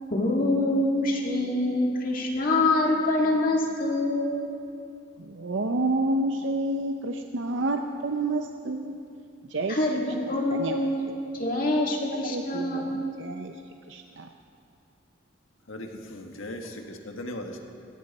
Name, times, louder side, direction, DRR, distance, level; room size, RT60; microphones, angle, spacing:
voice 1, 0.1-4.4 9.7-11.0 11.3-13.0, left 2 dB, 45° left, -1 dB, 2.0 m, -25 dB
voice 2, 5.4-9.0 9.5-9.8 10.6-10.8 12.3-12.9 13.2-13.5 13.9-14.2, right 2 dB, 65° right, 4 dB, 0.6 m, -28 dB
voice 3, 15.7-17.6, left 1 dB, 85° left, 3 dB, 1.6 m, -38 dB
18.0 x 17.0 x 4.2 m, 2.6 s
head